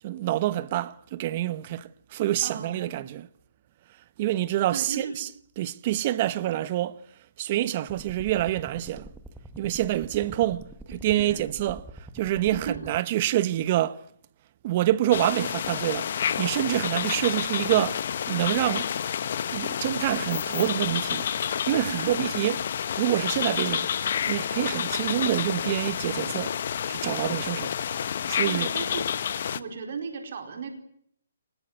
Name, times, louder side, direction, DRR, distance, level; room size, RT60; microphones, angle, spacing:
voice 1, 0.0-3.3 4.2-5.3 5.6-7.0 7.4-9.1 9.6-14.0 14.6-18.9 19.5-21.3 21.7-22.5 22.9-23.9 24.3-26.6 26.9-27.7 28.3-28.7, right 14 dB, 35° right, 1.0 m, -27 dB
voice 2, 2.4-3.0 4.7-5.2 11.2-11.5 12.5-12.9 15.4-15.5 21.9-22.3 28.5-29.1 29.5-30.7, right 5 dB, 55° right, 4.7 m, -36 dB
sound 1, 7.9-13.0, right 1 dB, 5° right, 1.6 m, -45 dB
sound 2, 15.1-29.6, left 8 dB, 55° left, 1.2 m, -29 dB
23.5 x 21.0 x 9.5 m
hypercardioid pair, 150°, 0 cm